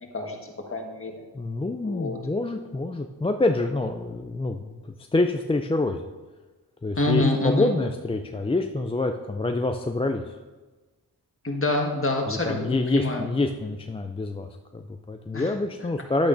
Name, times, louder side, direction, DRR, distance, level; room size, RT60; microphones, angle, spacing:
voice 1, 0.0-1.2 1.8-2.2 6.9-7.7 11.4-13.3 15.3-15.5, left 2 dB, 30° left, 1 dB, 1.5 m, -26 dB
voice 2, 1.3-6.0 6.8-10.4 12.3-14.5 14.7-16.3, left 2 dB, 15° left, 5 dB, 0.4 m, -26 dB
10.5 x 8.3 x 2.6 m, 1.3 s
cardioid pair, 60°, 41 cm